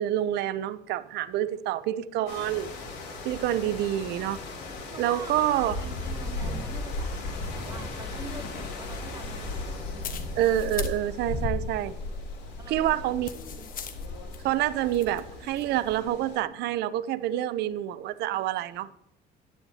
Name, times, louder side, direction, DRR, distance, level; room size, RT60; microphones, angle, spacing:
voice 1, 0.0-2.7 3.2-4.4 5.0-5.7 10.4-11.9 12.7-13.3 14.4-19.0, right 12 dB, 80° right, 0.5 m, -27 dB
sound 1, 2.3-16.4, left 2 dB, 85° left, 3.2 m, -36 dB
voice 2, 4.9-10.1 12.6-13.1 13.4-13.7, right 3 dB, 20° right, 2.0 m, -45 dB
sound 2, 7.3-16.0, left 6 dB, 55° left, 1.2 m, -44 dB
10.5 x 10.0 x 2.8 m
cardioid pair, 110°, 17 cm